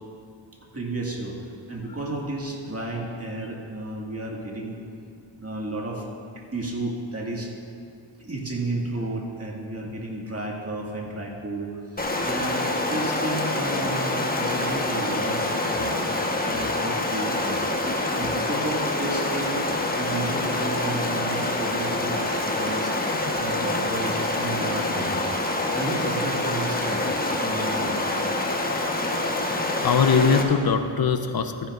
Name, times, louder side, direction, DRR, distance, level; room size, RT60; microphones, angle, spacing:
voice 1, 0.7-1.3 1.7-4.8 5.4-6.0 6.3-7.5 8.2-17.7 18.2-19.6 19.9-22.9 23.4-25.2 25.7-27.0 27.4-28.0, right 2 dB, 30° right, -1 dB, 2.0 m, -32 dB
Stream, 12.0-30.4, left 2 dB, 20° left, 1.2 m, -26 dB
voice 2, 29.8-31.7, left 5 dB, 50° left, 8 dB, 0.8 m, -22 dB
15.0 x 10.0 x 2.6 m, 2.4 s
cardioid pair, 50°, 48 cm